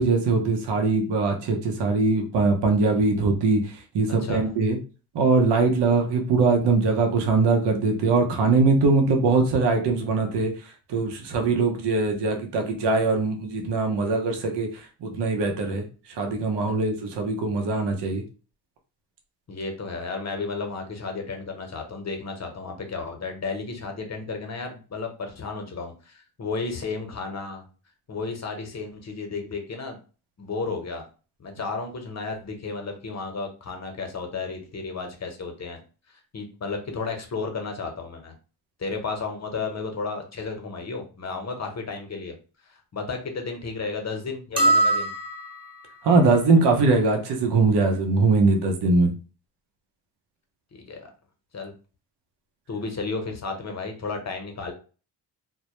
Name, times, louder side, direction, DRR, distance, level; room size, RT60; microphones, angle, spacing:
voice 1, 0.0-4.8 5.1-10.5 10.9-15.8 16.2-18.2 46.0-49.1, right 3 dB, 65° right, 3 dB, 0.7 m, -22 dB
voice 2, 4.2-4.5 16.7-16.8 19.5-27.6 28.1-30.0 30.4-31.0 31.4-35.8 36.1-38.4 38.8-42.3 42.7-45.1 50.7-51.1 51.5-51.7 52.7-54.7, left 4 dB, 35° left, 4 dB, 0.8 m, -33 dB
sound 1, 44.6-45.9, right 2 dB, 10° right, 1.0 m, -22 dB
2.1 x 2.1 x 2.9 m, 0.36 s
supercardioid pair, 50°, 44 cm